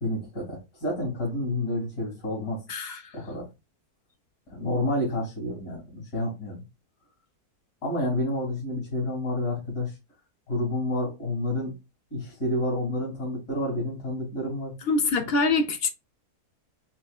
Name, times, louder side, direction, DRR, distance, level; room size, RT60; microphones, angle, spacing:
voice 1, 0.0-2.6 3.1-3.4 4.5-6.6 7.8-9.9 10.5-11.8 12.1-14.7 15.1-15.3, left 1 dB, 75° left, 3.2 m, -29 dB
voice 2, 2.7-3.2 14.9-15.9, left 3 dB, 55° left, 0.7 m, -25 dB
5.6 x 3.1 x 2.4 m
omnidirectional pair, 1.6 m